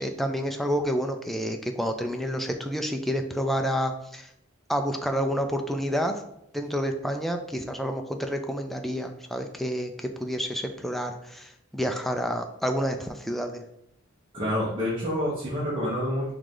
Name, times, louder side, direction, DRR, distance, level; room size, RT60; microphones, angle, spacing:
voice 1, 0.0-4.3 4.7-6.1 6.5-13.6, equal, ahead, 4 dB, 0.4 m, -29 dB
voice 2, 14.3-16.3, equal, 25° right, -6 dB, 0.9 m, -28 dB
4.8 x 2.5 x 3.7 m, 0.76 s
head